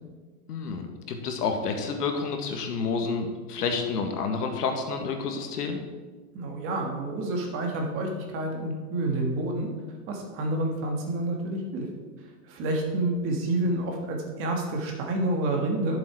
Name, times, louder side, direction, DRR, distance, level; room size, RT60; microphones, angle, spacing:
voice 1, 0.5-5.8, left 5 dB, 75° left, 4 dB, 1.9 m, -29 dB
voice 2, 6.3-9.7 10.1-11.9 12.4-16.0, right 2 dB, 25° right, 1 dB, 1.6 m, -28 dB
11.5 x 7.2 x 4.7 m, 1.4 s
supercardioid pair, 160°, 47 cm